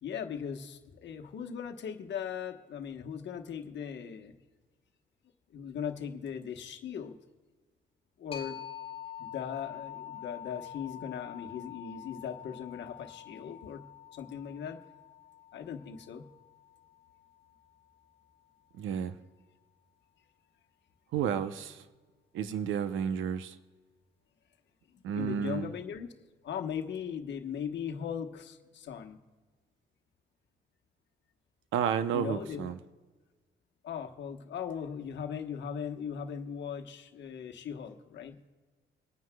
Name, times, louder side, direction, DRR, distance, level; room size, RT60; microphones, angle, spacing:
voice 1, 0.0-4.3 5.5-7.2 8.2-8.6 9.2-13.8 14.1-14.8 15.5-16.3 24.9-26.1 26.4-29.2 32.1-32.7 33.8-38.4, left 7 dB, 65° left, 1.1 m, -39 dB
sound 1, 8.3-17.7, left 10 dB, 30° left, 1.3 m, -46 dB
voice 2, 18.8-19.1 21.1-21.8 22.3-23.5 25.0-25.7 31.7-32.8, right 8 dB, 80° right, 0.7 m, -31 dB
25.0 x 9.5 x 2.3 m
cardioid pair, 90°, 20 cm